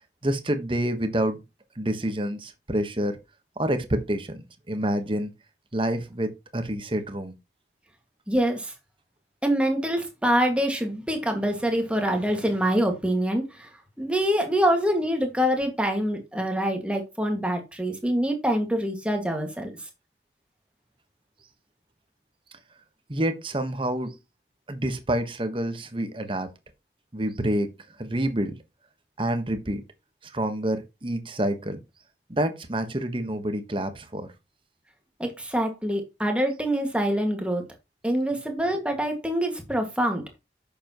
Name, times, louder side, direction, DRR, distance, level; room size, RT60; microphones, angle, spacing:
voice 1, 0.2-1.4 1.7-3.2 3.6-5.3 5.7-7.3 22.5-22.6 23.1-24.2 24.7-26.5 27.1-28.6 29.2-29.8 30.2-31.8 32.3-34.3, right 1 dB, 30° right, 1.3 m, -28 dB
voice 2, 8.3-8.7 9.4-13.7 14.0-19.7 35.2-37.6 38.0-40.2, equal, 5° right, 2.0 m, -25 dB
10.0 x 7.1 x 3.0 m
head